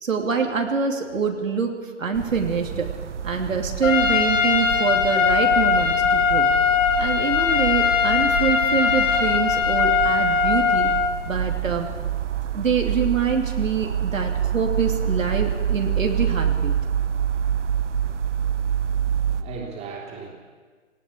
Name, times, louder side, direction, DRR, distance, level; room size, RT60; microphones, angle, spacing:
voice 1, 0.0-1.7 2.0-2.9 3.2-6.5 7.0-10.9 11.3-11.9 12.5-16.8, right 5 dB, 85° right, 2 dB, 3.0 m, -25 dB
sound 1, 2.1-19.4, right 9 dB, 65° right, 1.3 m, -27 dB
Trumpet, 3.8-11.1, left 6 dB, 80° left, 3.5 m, -20 dB
voice 2, 18.9-20.3, right 5 dB, 15° right, -1 dB, 3.3 m, -38 dB
18.5 x 16.5 x 8.8 m, 1.5 s
hypercardioid pair, 145°, 38 cm